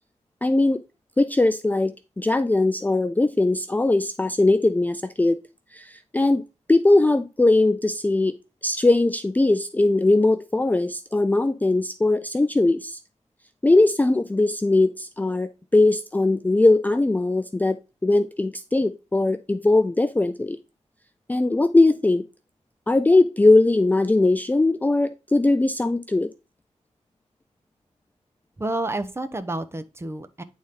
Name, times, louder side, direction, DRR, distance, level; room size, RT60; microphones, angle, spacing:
voice 1, 0.4-0.8 1.2-5.4 5.7-6.4 6.7-8.3 8.6-13.0 13.6-20.6 21.3-22.2 22.9-26.3, left 2 dB, 15° left, 0.4 m, -20 dB
voice 2, 28.6-30.4, right 2 dB, 20° right, 0.9 m, -29 dB
10.0 x 4.1 x 3.8 m
wide cardioid pair, 90°, 13 cm